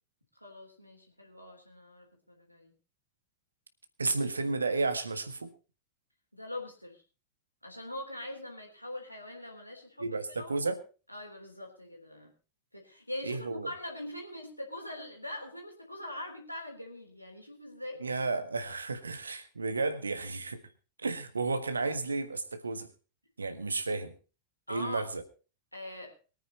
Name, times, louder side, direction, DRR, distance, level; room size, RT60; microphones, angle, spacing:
voice 1, 0.4-2.7 6.3-7.0 7.6-10.5 11.1-12.3 12.7-18.0 24.7-25.0 25.7-26.2, left 1 dB, 90° left, 1 dB, 3.7 m, -42 dB
voice 2, 4.0-5.5 10.0-10.8 13.2-13.7 18.0-20.6 21.0-22.9 23.4-24.1 24.7-25.2, right 3 dB, 75° right, 11 dB, 1.5 m, -32 dB
23.0 x 9.3 x 4.1 m, 0.34 s
figure-of-eight pair, 90°, 0 cm